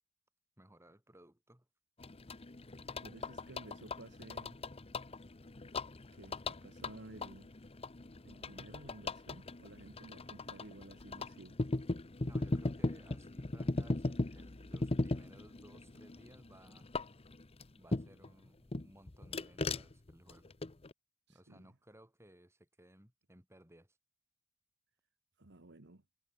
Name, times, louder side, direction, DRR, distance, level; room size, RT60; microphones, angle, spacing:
voice 1, 0.6-1.7 12.2-16.9 17.8-20.5 21.3-24.0, right 1 dB, 15° right, 4.7 m, -60 dB
sound 1, 2.0-18.3 18.7-20.9, left 2 dB, 30° left, 0.9 m, -39 dB
voice 2, 2.9-4.6 6.1-7.5 8.2-11.6 21.3-21.7 25.4-26.0, right 2 dB, 60° right, 1.6 m, -54 dB
head